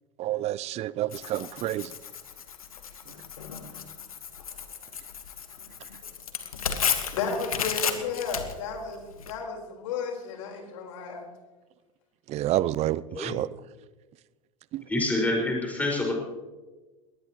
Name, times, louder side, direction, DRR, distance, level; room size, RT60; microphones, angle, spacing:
voice 1, 0.2-1.9 12.3-13.5 14.7-14.8, right 14 dB, 35° right, 20 dB, 0.6 m, -29 dB
Tearing, 1.1-9.3, left 7 dB, 85° left, 1.6 m, -34 dB
voice 2, 7.1-11.2, left 5 dB, 65° left, 1 dB, 4.5 m, -33 dB
voice 3, 14.9-16.1, left 2 dB, 10° left, -1 dB, 5.5 m, -26 dB
21.5 x 19.0 x 3.1 m, 1.2 s
hypercardioid pair, 85°, 18 cm